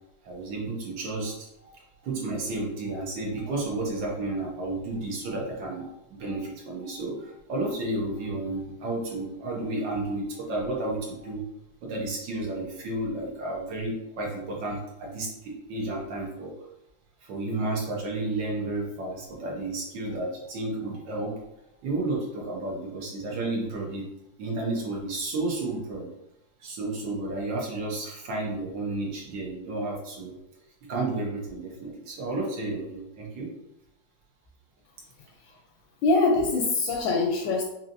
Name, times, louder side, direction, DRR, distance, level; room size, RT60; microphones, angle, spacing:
voice 1, 0.2-1.7 2.0-11.4 11.8-16.5 17.2-21.4 21.8-24.0 24.4-26.1 26.6-30.3 30.9-33.5, right 2 dB, 70° right, -2 dB, 1.6 m, -32 dB
voice 2, 36.0-37.6, left 3 dB, 85° left, 1 dB, 1.3 m, -23 dB
4.8 x 2.8 x 2.5 m, 0.87 s
omnidirectional pair, 2.0 m